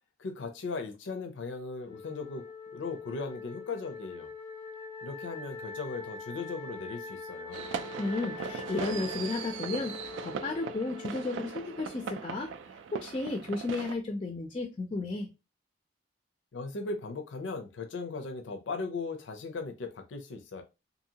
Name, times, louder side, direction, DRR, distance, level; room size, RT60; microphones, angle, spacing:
voice 1, 0.2-2.4 2.7-4.3 5.0-7.7 16.5-20.6, left 3 dB, 85° left, 0.5 m, -38 dB
Wind instrument woodwind instrument, 1.8-12.2, left 4 dB, 25° right, 0.7 m, -44 dB
sound 1, 7.5-13.9, right 6 dB, 80° right, 0.3 m, -39 dB
voice 2, 8.0-15.3, left 3 dB, 30° left, 0.3 m, -34 dB
2.7 x 2.7 x 2.7 m
head